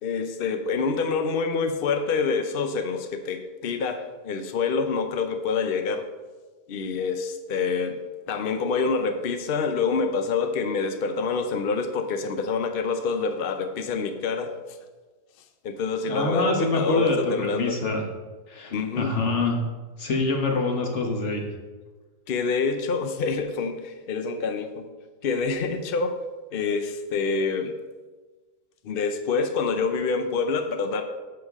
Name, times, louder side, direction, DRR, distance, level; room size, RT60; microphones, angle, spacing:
voice 1, 0.0-6.0 6.7-8.0 8.3-14.5 15.6-17.8 18.7-19.1 22.3-24.8 25.2-26.1 26.5-27.7 28.8-31.0, left 4 dB, 70° left, 6 dB, 0.5 m, -26 dB
voice 2, 16.1-18.0 18.5-19.6 20.0-21.5, left 3 dB, 45° left, 2 dB, 1.5 m, -25 dB
11.0 x 6.7 x 3.6 m, 1.3 s
omnidirectional pair, 1.8 m